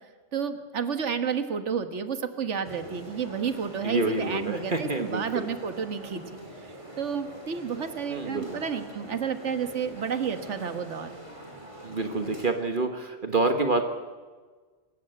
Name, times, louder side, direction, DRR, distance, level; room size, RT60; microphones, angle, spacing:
voice 1, 0.3-6.2 6.6-11.2, right 6 dB, 80° right, 9 dB, 1.7 m, -31 dB
sound 1, 2.6-12.5, right 1 dB, 25° right, 3.4 m, -44 dB
voice 2, 3.8-5.5 8.1-8.6 11.8-13.8, right 3 dB, 45° right, 6 dB, 1.4 m, -27 dB
24.5 x 14.5 x 8.9 m, 1.4 s
omnidirectional pair, 1.2 m